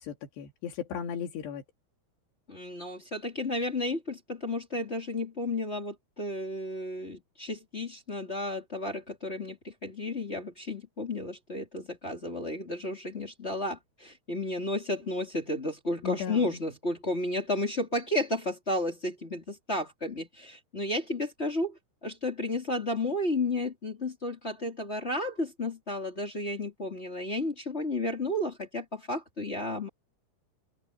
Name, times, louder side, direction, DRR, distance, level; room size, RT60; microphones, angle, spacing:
voice 1, 0.0-1.6 16.0-16.6, left 7 dB, 80° left, 4.5 m, -36 dB
voice 2, 2.5-29.9, left 1 dB, 20° left, 2.5 m, -32 dB
open air
omnidirectional pair, 4.8 m